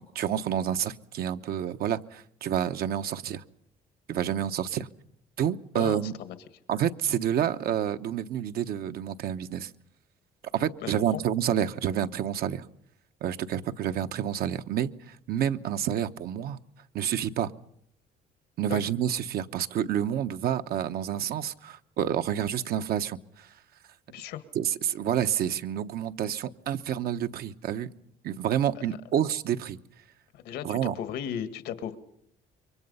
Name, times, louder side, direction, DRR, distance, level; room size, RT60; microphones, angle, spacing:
voice 1, 0.0-3.4 4.1-4.9 5.4-6.1 6.7-9.7 10.5-12.6 13.2-16.6 16.9-17.5 18.6-23.5 24.5-27.9 28.2-29.8 30.6-30.9, right 10 dB, 65° right, 9 dB, 1.0 m, -29 dB
voice 2, 5.7-6.4 10.8-11.2 18.7-18.8 24.1-24.4 30.3-32.0, left 9 dB, 85° left, 11 dB, 1.9 m, -36 dB
27.0 x 24.0 x 5.6 m, 0.68 s
cardioid pair, 110°, 17 cm